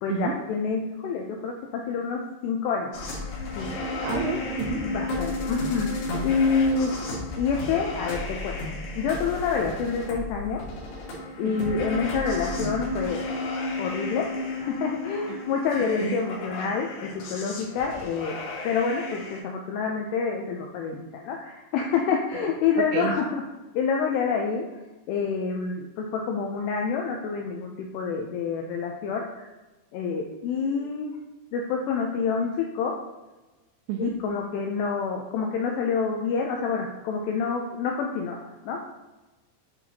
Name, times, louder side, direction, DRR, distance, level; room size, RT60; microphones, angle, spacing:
voice 1, 0.0-3.0 3.6-3.7 4.8-5.9 6.2-7.0 7.4-8.5 9.0-10.6 11.4-13.2 13.8-18.4 18.6-23.4 23.8-24.7 25.1-29.5 29.9-31.1 31.5-32.9 34.0-38.4 38.7-38.8, left 5 dB, 90° left, 1 dB, 2.3 m, -27 dB
sound 1, 2.9-19.4, left 2 dB, 70° left, 3.0 m, -33 dB
voice 2, 4.0-4.8 11.4-11.7 16.0-16.2 22.9-23.1 33.9-34.1, right 8 dB, 85° right, 3 dB, 2.7 m, -30 dB
9.0 x 3.9 x 2.8 m, 1.1 s
omnidirectional pair, 5.4 m